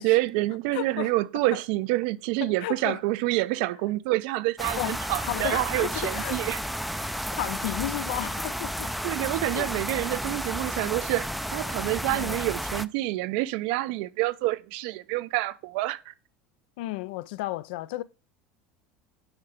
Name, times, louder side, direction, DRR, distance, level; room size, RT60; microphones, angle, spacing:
voice 1, 0.0-6.6 9.0-16.1, right 18 dB, 65° right, 0.4 m, -27 dB
voice 2, 0.7-1.1 2.4-3.0 4.7-6.4 6.9-8.9 9.5-9.7 12.1-12.4 16.8-18.0, left 16 dB, 75° left, 0.4 m, -33 dB
sound 1, 4.6-12.9, equal, ahead, 0.3 m, -32 dB
8.7 x 4.6 x 3.4 m
hypercardioid pair, 90°, 5 cm